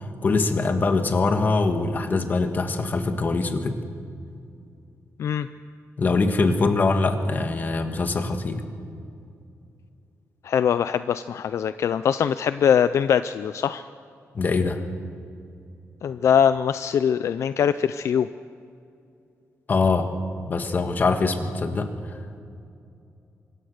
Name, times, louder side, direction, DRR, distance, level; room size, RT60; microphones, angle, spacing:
voice 1, 0.2-3.8 6.0-8.6 14.3-14.8 19.7-20.1 20.5-21.9, left 3 dB, 35° left, 7 dB, 1.7 m, -23 dB
voice 2, 10.4-13.8 16.0-18.3, left 8 dB, 65° left, 13 dB, 0.5 m, -22 dB
25.0 x 21.5 x 6.6 m, 2.5 s
wide cardioid pair, 160°, 5 cm